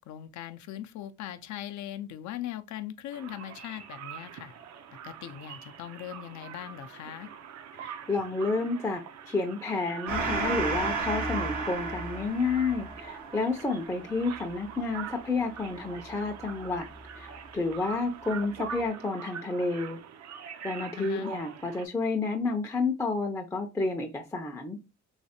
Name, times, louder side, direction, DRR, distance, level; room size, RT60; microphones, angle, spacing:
voice 1, 0.0-4.5 5.0-7.3 21.0-21.3, left 12 dB, 70° left, 0.5 m, -40 dB
sound 1, 3.1-21.9, right 8 dB, 60° right, 0.5 m, -44 dB
voice 2, 7.8-16.9 17.1-20.0 20.6-24.8, left 3 dB, 10° left, 0.5 m, -30 dB
Gong, 10.1-17.0, right 3 dB, 85° right, 1.0 m, -34 dB
3.2 x 3.1 x 2.8 m
cardioid pair, 90°, 30 cm